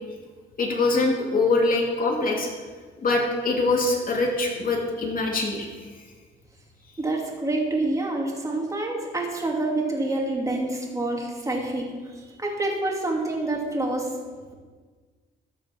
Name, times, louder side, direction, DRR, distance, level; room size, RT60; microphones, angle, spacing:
voice 1, 0.6-2.5 3.0-5.7, left 3 dB, 45° left, 0 dB, 2.6 m, -23 dB
voice 2, 7.0-11.9 12.4-14.1, right 2 dB, 15° right, -1 dB, 2.6 m, -27 dB
13.5 x 6.1 x 5.8 m, 1.5 s
cardioid pair, 90°, 20 cm